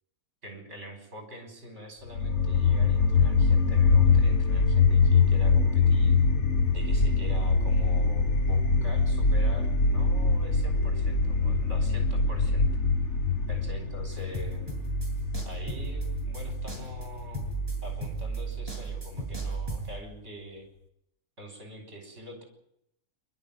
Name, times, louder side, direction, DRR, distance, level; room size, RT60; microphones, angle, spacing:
voice 1, 0.4-6.2 6.7-12.7 13.5-14.8 15.4-17.5 17.8-20.7 21.4-22.4, equal, 55° right, 4 dB, 6.4 m, -44 dB
sound 1, 2.1-19.2, left 4 dB, 55° left, 1.9 m, -24 dB
sound 2, 14.1-20.0, right 4 dB, 15° right, 7.0 m, -34 dB
27.0 x 13.0 x 9.4 m, 0.76 s
omnidirectional pair, 1.5 m